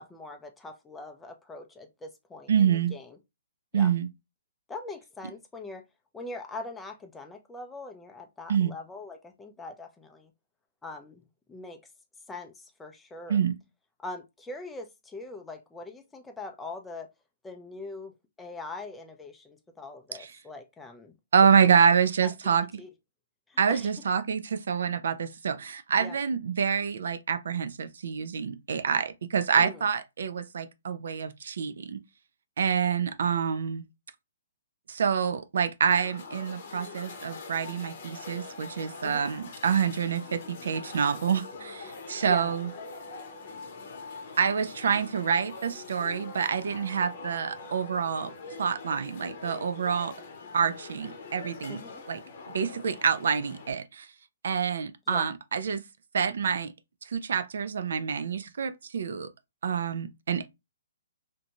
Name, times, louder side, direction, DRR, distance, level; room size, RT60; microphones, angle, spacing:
voice 1, 0.0-3.2 3.7-3.9 4.7-5.8 6.1-10.3 10.8-11.2 11.5-11.8 12.3-13.4 14.0-17.1 17.4-18.1 18.4-21.1 21.7-21.9 22.2-22.3 22.8-22.9 23.5-23.9 26.0-26.2 29.6-29.9 39.0-39.3 42.2-42.6 51.7-52.0 55.1-55.3, left 3 dB, 5° left, 0.4 m, -42 dB
voice 2, 2.5-2.9 3.7-4.1 8.5-8.7 13.3-13.5 20.2-20.3 21.3-22.7 23.6-32.0 32.6-33.8 34.9-42.7 44.4-48.3 48.6-50.1 50.5-51.8 52.1-52.2 52.5-54.1 54.4-55.8 56.1-56.7 57.1-59.3 59.6-60.5, right 7 dB, 70° right, 0.4 m, -27 dB
sound 1, 35.9-53.7, left 3 dB, 45° left, 0.8 m, -43 dB
2.6 x 2.1 x 2.9 m
hypercardioid pair, 155°, 0 cm